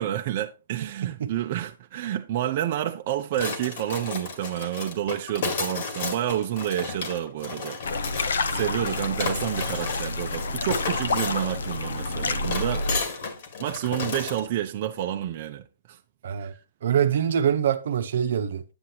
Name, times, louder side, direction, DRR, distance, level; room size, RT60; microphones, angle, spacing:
voice 1, 0.0-8.1 8.5-12.9 13.6-16.0 16.4-16.6, right 12 dB, 45° right, 0.6 m, -29 dB
voice 2, 1.0-1.3 16.2-16.5 16.8-18.6, right 9 dB, 70° right, 0.8 m, -24 dB
sound 1, 3.3-14.5, left 4 dB, 55° left, 2.1 m, -33 dB
sound 2, 7.8-13.0, left 3 dB, 85° left, 0.8 m, -29 dB
8.8 x 7.8 x 2.9 m
hypercardioid pair, 150°, 0 cm